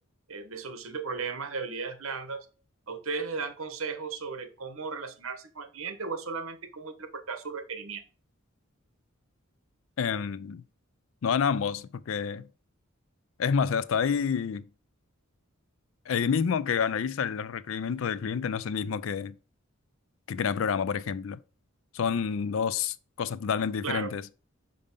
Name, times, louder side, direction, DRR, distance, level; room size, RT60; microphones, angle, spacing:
voice 1, 0.3-2.5 2.9-8.0 23.8-24.1, right 5 dB, 75° right, 1.1 m, -35 dB
voice 2, 10.0-10.6 11.2-12.5 13.4-14.6 16.1-19.4 20.3-21.4 21.9-24.2, left 6 dB, 65° left, 0.4 m, -28 dB
5.4 x 5.2 x 5.3 m
head